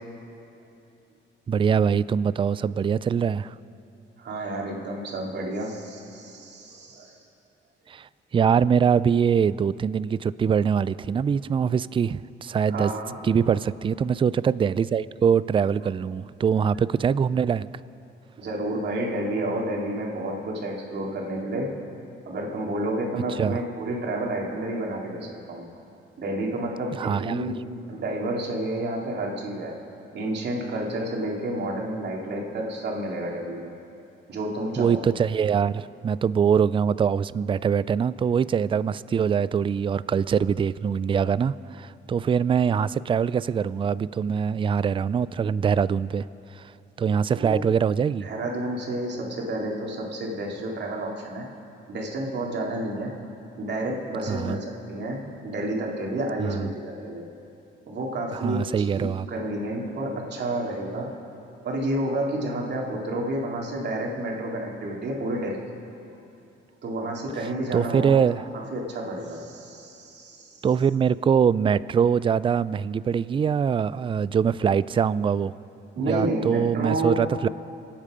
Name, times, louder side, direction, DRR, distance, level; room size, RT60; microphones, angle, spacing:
voice 1, 1.5-3.5 7.9-12.9 13.2-17.7 23.4-23.6 27.0-27.4 34.8-46.3 46.6-46.7 47.0-48.3 54.3-54.6 56.4-56.7 58.3-59.3 67.7-68.4 70.6-75.5 76.1-77.5, right 7 dB, 25° right, 18 dB, 0.3 m, -23 dB
voice 2, 4.2-7.3 12.7-13.2 18.4-21.7 22.2-25.6 26.2-27.6 27.9-29.8 30.1-33.7 34.3-35.1 47.3-47.7 48.2-51.5 51.9-53.2 53.6-57.2 57.9-61.1 61.6-65.6 66.8-70.7 76.0-77.2, right 1 dB, 60° right, -1 dB, 2.7 m, -30 dB
25.5 x 8.9 x 5.1 m, 2.7 s
cardioid pair, 90°, 20 cm